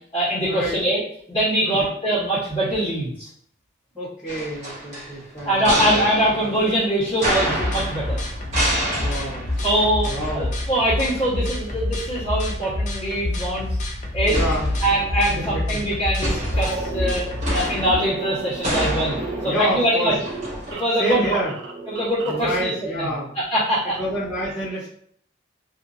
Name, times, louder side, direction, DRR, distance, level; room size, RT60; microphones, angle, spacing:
voice 1, 0.1-1.0 1.3-3.3 5.4-8.2 9.6-13.7 14.1-14.4 14.8-17.2 17.5-19.2 19.4-20.2 20.7-21.4 21.9-24.0, right 1 dB, 20° left, -13 dB, 1.1 m, -23 dB
voice 2, 3.9-5.9 6.4-6.5 8.9-9.4 10.0-10.5 14.3-14.7 15.3-15.9 19.4-20.1 21.0-21.5 22.2-23.4 23.9-24.9, equal, 5° right, -12 dB, 1.3 m, -28 dB
sound 1, 4.3-10.9 11.1-11.2 14.3-15.4 16.2-20.7, equal, 35° right, 1.1 m, -28 dB
sound 2, 7.3-18.0, left 1 dB, 40° left, 0.5 m, -28 dB
sound 3, 16.5-22.5, right 3 dB, 65° right, 0.4 m, -35 dB
2.7 x 2.5 x 2.5 m, 0.63 s
head